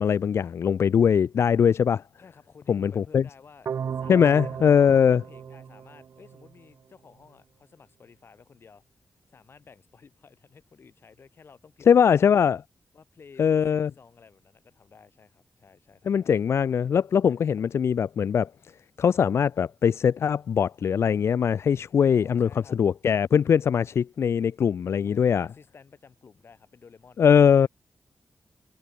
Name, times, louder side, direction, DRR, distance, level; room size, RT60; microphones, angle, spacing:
voice 1, 0.0-2.0 2.7-3.2 4.1-5.2 11.9-12.6 13.4-13.9 16.1-18.5 19.0-22.5 22.8-25.5 27.2-27.7, left 7 dB, 80° left, 0.6 m, -21 dB
voice 2, 2.2-8.8 9.3-12.4 12.9-16.4 17.2-17.4 22.1-22.8 25.0-27.7, left 5 dB, 60° left, 6.6 m, -53 dB
sound 1, 3.7-6.6, right 7 dB, 85° right, 1.2 m, -35 dB
wide cardioid pair, 90°, 4 cm